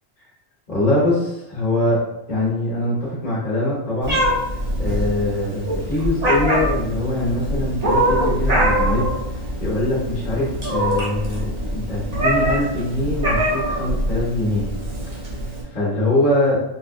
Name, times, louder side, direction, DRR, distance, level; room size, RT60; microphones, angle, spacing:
voice 1, 0.7-4.4 4.8-14.7 15.7-16.6, left 1 dB, 45° left, -7 dB, 1.0 m, -23 dB
Meow, 4.0-15.6, right 1 dB, 40° right, 0.8 m, -23 dB
4.6 x 2.0 x 2.4 m, 0.88 s
omnidirectional pair, 1.1 m